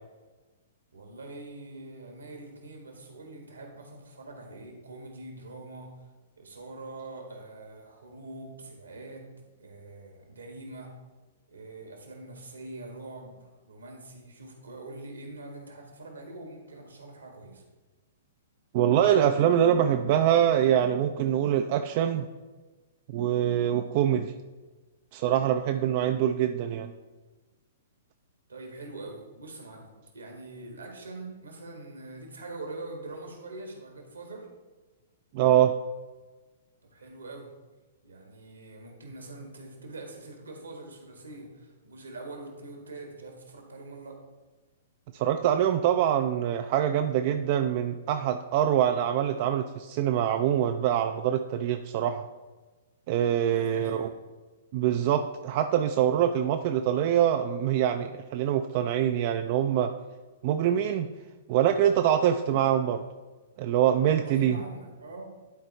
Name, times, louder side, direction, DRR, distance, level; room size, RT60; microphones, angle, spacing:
voice 1, 0.9-5.9 6.3-10.9 11.5-17.6 28.5-34.5 36.8-37.5 38.0-44.2 53.3-54.1 64.2-65.2, right 2 dB, 75° right, 2 dB, 1.6 m, -44 dB
voice 2, 18.7-22.3 23.1-24.3 25.1-26.9 35.3-35.8 45.1-52.3 53.1-54.1 54.7-59.9 60.4-61.1 61.5-63.0 63.6-64.6, right 10 dB, 40° right, 7 dB, 0.3 m, -24 dB
11.0 x 4.4 x 3.3 m, 1.2 s
figure-of-eight pair, 110°, 0 cm